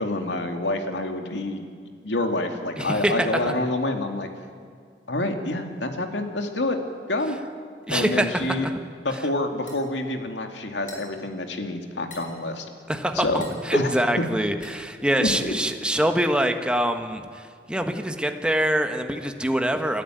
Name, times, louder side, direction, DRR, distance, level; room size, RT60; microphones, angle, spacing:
voice 1, 0.0-1.6 2.0-4.3 5.1-6.8 7.1-7.4 7.9-8.7 9.0-12.7 13.1-13.4 13.7-13.9 15.2-15.5, left 2 dB, 85° left, 5 dB, 2.4 m, -27 dB
voice 2, 2.8-3.1 3.4-3.5 7.9-8.7 12.9-20.0, right 1 dB, 5° right, 6 dB, 1.3 m, -24 dB
sound 1, 9.7-15.7, left 1 dB, 50° left, 5.5 m, -45 dB
29.5 x 13.0 x 9.2 m, 2.1 s
head